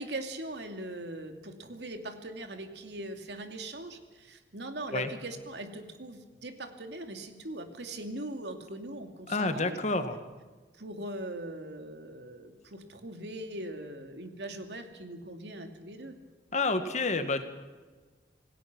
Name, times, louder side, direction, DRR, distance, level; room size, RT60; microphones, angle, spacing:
voice 1, 0.0-9.8 10.8-16.2, right 1 dB, 75° right, 6 dB, 2.6 m, -40 dB
voice 2, 9.3-10.2 16.5-17.4, left 3 dB, 40° left, 9 dB, 1.8 m, -29 dB
27.0 x 17.5 x 6.2 m, 1.4 s
head